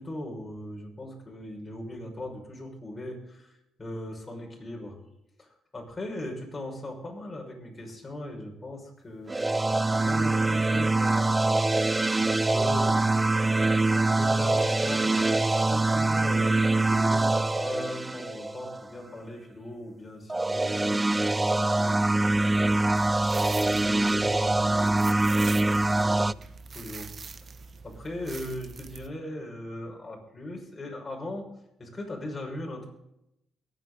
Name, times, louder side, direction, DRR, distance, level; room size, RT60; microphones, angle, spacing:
voice 1, 0.0-3.5 3.8-5.0 5.4-5.5 5.7-9.4 9.9-11.6 12.0-13.1 13.9-26.3 26.7-27.1 27.8-32.9, left 1 dB, 25° left, -1 dB, 5.9 m, -39 dB
sound 1, 9.3-18.8 20.3-26.3, right 2 dB, 15° right, 0.4 m, -24 dB
sound 2, 22.2-29.1, right 4 dB, 45° right, 1.2 m, -44 dB
23.0 x 9.3 x 4.0 m, 0.85 s
cardioid pair, 90°, 0 cm